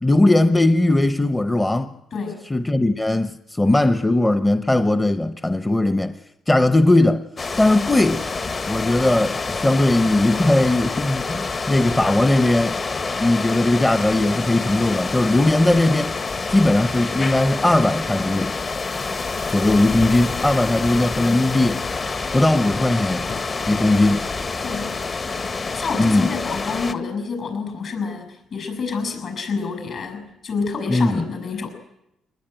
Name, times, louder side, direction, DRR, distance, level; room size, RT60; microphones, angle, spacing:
voice 1, 0.0-1.9 2.5-6.1 6.5-7.2 7.6-8.2 8.7-12.8 13.2-16.1 16.5-18.5 19.5-21.8 22.3-23.3 23.7-24.2 26.0-26.3 30.9-31.2, left 2 dB, 15° left, 0.9 m, -18 dB
sound 1, 7.4-26.9, left 4 dB, 40° left, 1.4 m, -27 dB
voice 2, 25.7-31.7, left 5 dB, 55° left, 7.0 m, -28 dB
22.5 x 20.0 x 9.2 m
cardioid pair, 90°, 0 cm